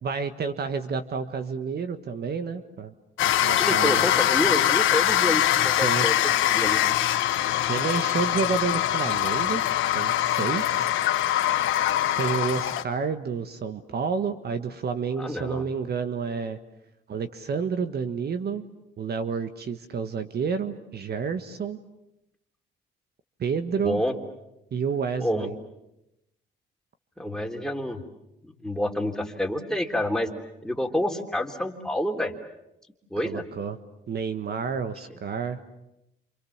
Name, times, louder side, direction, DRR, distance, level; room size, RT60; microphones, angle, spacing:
voice 1, 0.0-2.9 3.2-4.1 5.6-6.1 7.7-9.6 9.9-10.9 12.2-16.6 17.1-18.6 19.0-21.8 23.4-24.0 24.7-25.5 33.2-33.8 34.1-35.6, right 6 dB, 55° right, 9 dB, 1.5 m, -30 dB
sound 1, 3.2-12.8, left 12 dB, 85° left, 1.5 m, -23 dB
voice 2, 3.6-6.8 15.2-15.6 23.8-24.2 25.2-25.5 27.2-28.0 28.4-30.3 30.6-32.3 33.1-33.4, left 1 dB, 5° left, 2 dB, 3.5 m, -28 dB
28.5 x 27.5 x 7.3 m, 0.88 s
cardioid pair, 90°, 20 cm